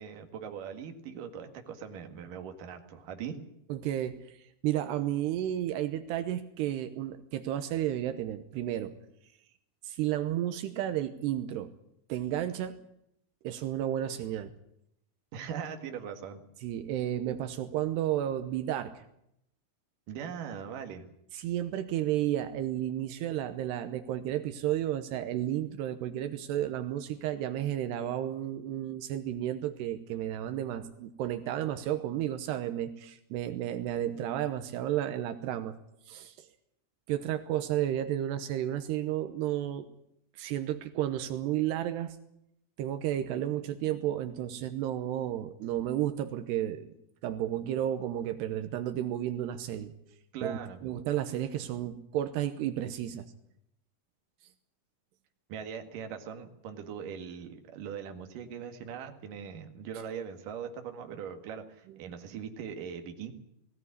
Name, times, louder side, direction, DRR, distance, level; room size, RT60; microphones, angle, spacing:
voice 1, 0.0-3.4 15.3-16.4 20.1-21.0 50.3-50.8 55.5-63.3, right 7 dB, 60° right, 5 dB, 3.2 m, -40 dB
voice 2, 3.7-4.4 4.6-8.9 9.8-11.7 12.1-12.8 13.4-14.5 16.6-19.0 21.3-35.8 36.1-36.5 37.1-39.9 40.4-42.2 42.8-46.9 47.2-49.9 50.4-53.3, right 12 dB, 80° right, 9 dB, 3.1 m, -32 dB
20.0 x 16.5 x 9.7 m, 0.77 s
omnidirectional pair, 4.7 m